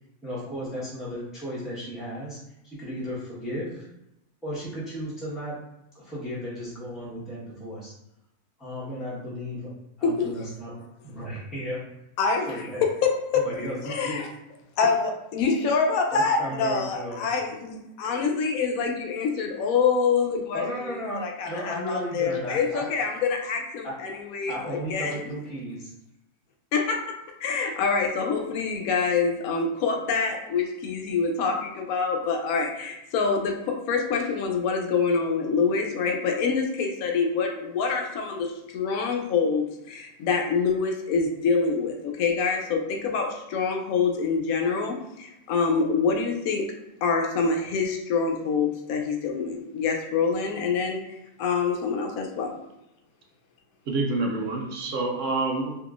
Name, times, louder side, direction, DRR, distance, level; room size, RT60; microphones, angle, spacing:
voice 1, 0.2-2.4 2.6-3.8 4.4-5.6 5.9-7.9 8.6-9.7 10.0-10.7 11.0-11.8 12.5-12.8 13.3-14.2 14.8-14.9 16.1-17.2 20.5-22.8 23.8-23.9 24.5-25.9, equal, ahead, -9 dB, 0.8 m, -34 dB
voice 2, 10.0-10.3 12.2-12.6 13.3-13.4 13.8-14.3 14.8-25.1 26.7-46.7 47.0-51.0 51.4-52.5, left 5 dB, 70° left, 2 dB, 1.0 m, -26 dB
voice 3, 53.9-55.9, right 3 dB, 65° right, 0 dB, 0.8 m, -27 dB
3.6 x 2.8 x 2.4 m, 0.87 s
omnidirectional pair, 1.6 m